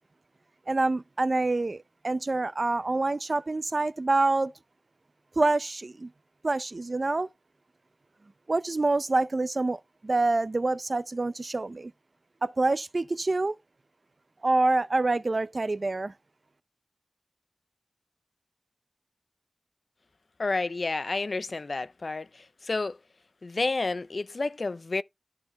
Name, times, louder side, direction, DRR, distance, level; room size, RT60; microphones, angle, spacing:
voice 1, 0.7-4.5 5.4-6.1 6.4-7.3 8.5-11.9 12.4-13.6 14.4-16.1, right 2 dB, 55° right, 0.5 m, -26 dB
voice 2, 20.4-23.0 23.4-25.0, left 3 dB, 70° left, 0.5 m, -30 dB
13.5 x 4.6 x 3.1 m
wide cardioid pair, 65°, 0 cm